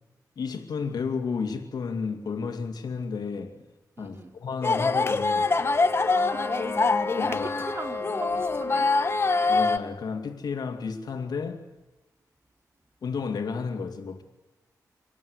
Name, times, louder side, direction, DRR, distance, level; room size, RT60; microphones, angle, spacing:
voice 1, 0.4-3.6 4.0-5.5 7.2-7.5 9.5-11.6 13.0-14.2, left 5 dB, 75° left, 2.4 m, -32 dB
voice 2, 4.0-4.3 6.0-7.0 7.3-7.4 7.7-8.9, right 2 dB, 35° right, 3.3 m, -39 dB
sound 1, 4.6-9.8, left 3 dB, 35° left, 1.4 m, -24 dB
25.5 x 19.5 x 9.7 m
wide cardioid pair, 105°, 7 cm